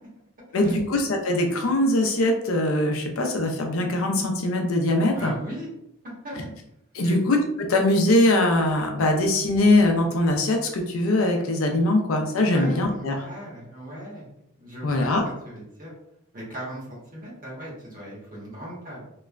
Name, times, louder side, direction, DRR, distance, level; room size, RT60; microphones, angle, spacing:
voice 1, 0.5-5.3 6.9-13.2 14.8-15.2, left 1 dB, 75° left, 3 dB, 0.5 m, -22 dB
voice 2, 5.1-5.7 6.2-6.5 7.0-7.2 12.5-14.3 14.6-15.1 15.4-15.9 16.3-19.0, equal, 40° right, -5 dB, 1.1 m, -38 dB
2.9 x 2.1 x 2.4 m, 0.80 s
head